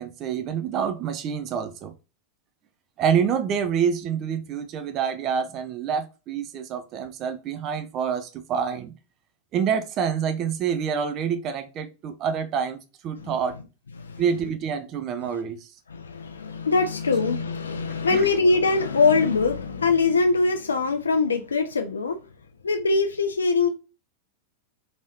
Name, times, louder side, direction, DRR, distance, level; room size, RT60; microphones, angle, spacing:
voice 1, 0.0-1.9 3.0-8.9 9.5-12.8 13.0-13.5 14.2-15.6 18.1-18.3, right 7 dB, 35° right, 0.4 m, -27 dB
voice 2, 15.9-22.2 22.6-23.7, left 4 dB, 70° left, 0.3 m, -22 dB
3.0 x 2.7 x 2.9 m
figure-of-eight pair, 90°, 0 cm